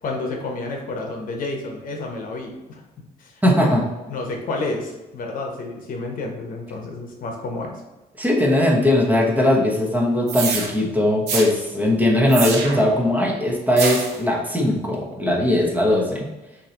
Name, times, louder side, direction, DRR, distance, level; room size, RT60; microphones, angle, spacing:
voice 1, 0.0-2.8 3.2-3.7 4.1-7.8, left 2 dB, 55° left, 2 dB, 1.0 m, -30 dB
voice 2, 3.4-3.9 8.2-16.3, left 1 dB, 10° right, -2 dB, 1.0 m, -19 dB
sound 1, 10.3-10.7 11.3-11.5 12.3-12.9 13.8-14.2, right 5 dB, 80° right, 0.9 m, -26 dB
6.4 x 2.8 x 2.9 m, 1.1 s
cardioid pair, 110°, 17 cm